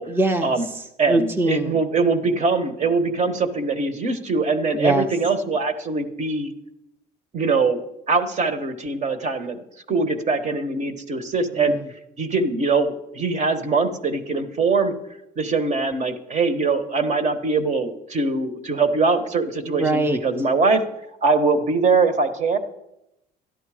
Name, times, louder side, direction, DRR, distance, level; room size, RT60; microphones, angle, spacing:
voice 1, 0.1-1.8 4.7-5.1 11.6-11.9 19.6-20.2, right 2 dB, 15° right, 5 dB, 0.7 m, -23 dB
voice 2, 1.0-6.5 7.3-9.6 9.9-11.7 12.2-14.9 15.4-20.8 21.2-22.6, right 4 dB, 45° right, 9 dB, 1.3 m, -22 dB
13.0 x 11.0 x 5.0 m, 0.86 s
cardioid pair, 110°, 17 cm